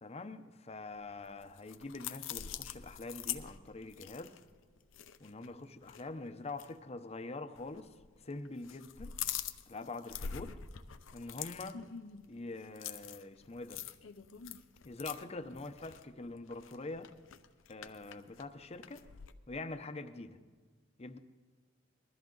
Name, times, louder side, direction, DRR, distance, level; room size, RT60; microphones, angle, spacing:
voice 1, 0.0-4.3 5.2-7.9 8.2-9.2 9.7-10.6 11.1-11.8 12.3-13.8 14.8-17.1 17.7-19.1 19.5-20.4 21.0-21.2, left 3 dB, 30° left, 9 dB, 0.7 m, -44 dB
sound 1, 1.1-5.5 5.8-6.0 6.5-6.7 7.6-8.2 8.5-19.3, left 9 dB, 75° left, 0.6 m, -45 dB
20.5 x 13.5 x 3.9 m, 1.5 s
head